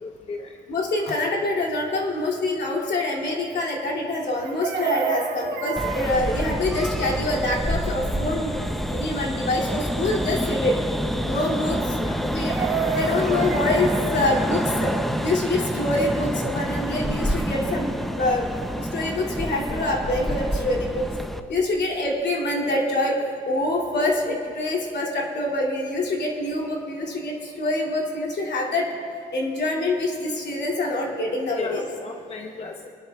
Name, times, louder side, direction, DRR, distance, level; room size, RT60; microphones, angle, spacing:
voice 1, 0.0-0.5 1.1-1.2 12.0-12.2 31.6-32.9, left 3 dB, 30° left, 3 dB, 0.9 m, -35 dB
voice 2, 0.7-10.7 11.2-14.9 15.2-21.0 21.5-28.9 29.3-31.9, left 2 dB, 55° left, -2 dB, 2.7 m, -25 dB
Chicken rooster, 4.4-6.2 12.3-14.1 16.3-16.4 16.7-16.9, right 6 dB, 60° right, 1.2 m, -29 dB
sound 1, 5.8-21.4, equal, ahead, 0.6 m, -27 dB
24.0 x 11.0 x 2.4 m, 2.6 s
cardioid pair, 90°, 20 cm